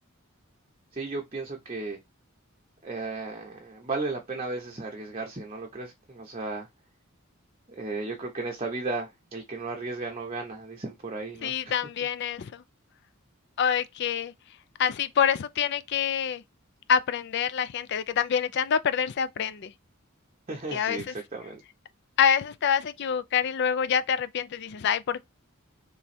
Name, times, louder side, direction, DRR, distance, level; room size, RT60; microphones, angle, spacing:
voice 1, 0.9-2.0 2.8-6.7 7.7-11.7 20.5-21.6, right 3 dB, 30° right, 0.7 m, -35 dB
voice 2, 11.4-12.6 13.6-14.3 14.8-16.4 16.9-19.7 20.7-21.1 22.2-25.2, left 7 dB, 50° left, 0.4 m, -26 dB
3.4 x 3.1 x 4.2 m
head